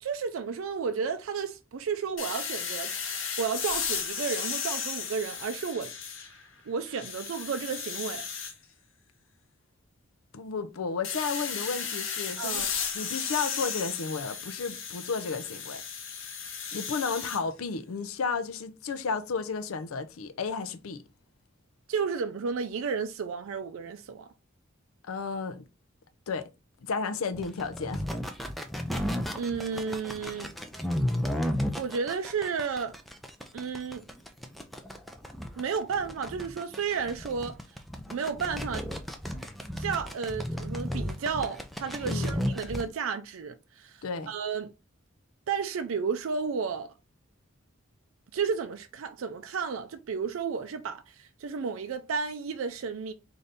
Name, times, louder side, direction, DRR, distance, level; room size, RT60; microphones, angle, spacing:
voice 1, 0.0-5.9 6.7-8.2 12.4-12.7 21.9-24.3 29.3-30.5 31.8-33.0 33.5-34.0 35.6-37.6 38.1-38.8 39.8-44.7 45.5-46.9 48.3-53.1, right 5 dB, 75° right, 0.4 m, -32 dB
sound 1, 2.2-6.5 6.9-8.5 11.0-17.4, left 6 dB, 65° left, 0.9 m, -35 dB
voice 2, 10.3-12.7 12.9-15.8 16.7-21.0 25.0-25.6 26.3-26.5 26.8-28.0 42.0-42.4 44.0-44.3, left 5 dB, 85° left, 0.5 m, -33 dB
sound 2, 27.3-42.9, equal, ahead, 0.4 m, -33 dB
3.9 x 2.6 x 3.4 m
head